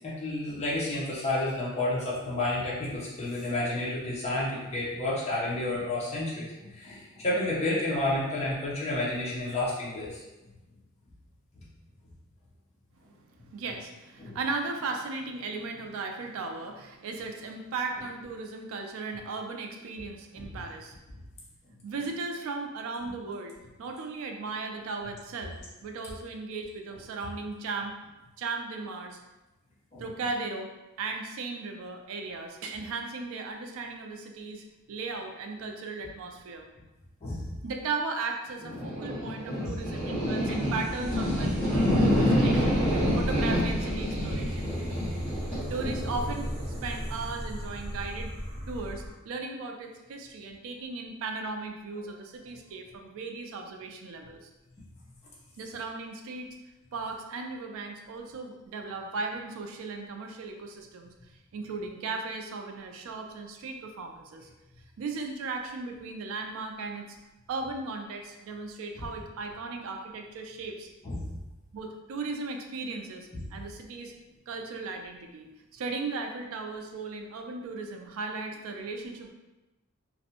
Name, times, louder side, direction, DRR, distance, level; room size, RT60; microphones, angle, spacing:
voice 1, 0.0-10.2 14.2-14.4 20.5-20.6 29.9-30.0 37.2-37.4 38.7-39.0 39.6-39.8 69.0-69.1 71.0-71.2, left 2 dB, 30° left, -7 dB, 0.5 m, -31 dB
voice 2, 13.3-20.9 21.8-25.6 25.8-27.9 28.4-29.2 30.0-30.7 31.0-36.7 37.6-42.8 43.2-44.7 45.7-46.5 46.8-48.3 48.7-54.5 55.6-56.5 56.9-61.1 61.5-64.5 65.0-67.2 67.5-70.9 71.7-74.1 74.5-79.3, right 3 dB, 70° right, 4 dB, 0.3 m, -36 dB
sound 1, 38.7-49.1, equal, 5° left, 1.0 m, -28 dB
2.5 x 2.1 x 2.7 m, 1.0 s
head